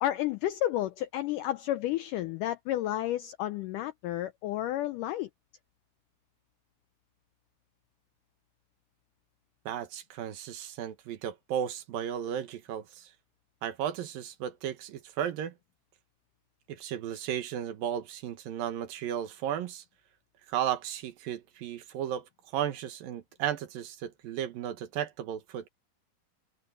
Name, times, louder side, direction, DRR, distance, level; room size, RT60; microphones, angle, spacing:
voice 1, 0.0-5.3, left 13 dB, 80° left, 1.9 m, -31 dB
voice 2, 9.7-13.1 13.6-15.5 16.7-19.8 20.5-25.7, right 10 dB, 70° right, 2.9 m, -34 dB
omnidirectional pair, 4.4 m